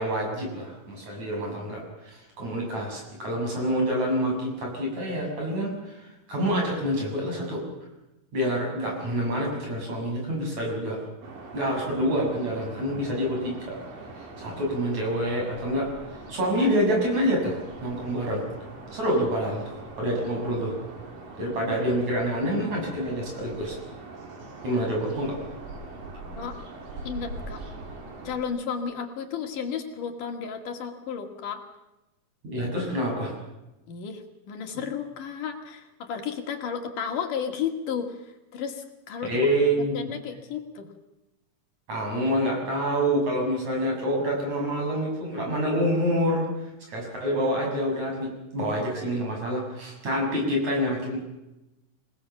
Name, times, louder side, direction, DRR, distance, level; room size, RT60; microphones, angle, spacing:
voice 1, 0.0-7.6 8.3-11.0 11.5-13.8 14.2-18.4 18.9-20.8 21.4-23.8 24.6-25.4 32.4-33.4 39.2-40.1 41.9-51.2, equal, 55° right, 0 dB, 8.1 m, -27 dB
sound 1, 11.2-28.4, right 3 dB, 80° right, 5.3 m, -42 dB
voice 2, 27.0-27.6 28.2-31.6 33.9-39.5 39.9-40.9, left 7 dB, 70° left, 4 dB, 3.5 m, -33 dB
26.5 x 19.0 x 7.2 m, 0.98 s
omnidirectional pair, 3.9 m